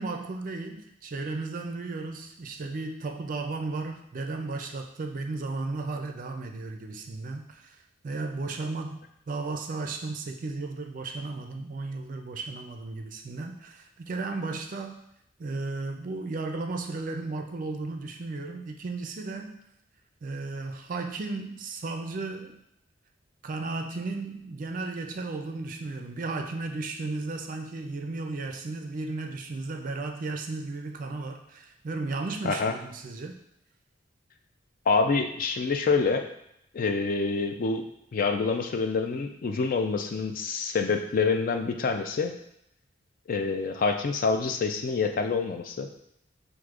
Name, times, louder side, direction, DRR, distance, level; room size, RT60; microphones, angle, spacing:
voice 1, 0.0-7.8 8.0-9.0 9.3-15.0 15.4-19.6 20.2-22.6 23.4-33.4, right 3 dB, 45° right, 5 dB, 0.4 m, -34 dB
voice 2, 34.9-36.3 36.7-37.9 38.1-42.3 43.3-45.9, left 4 dB, 45° left, 5 dB, 0.4 m, -26 dB
6.2 x 2.5 x 2.4 m, 0.77 s
head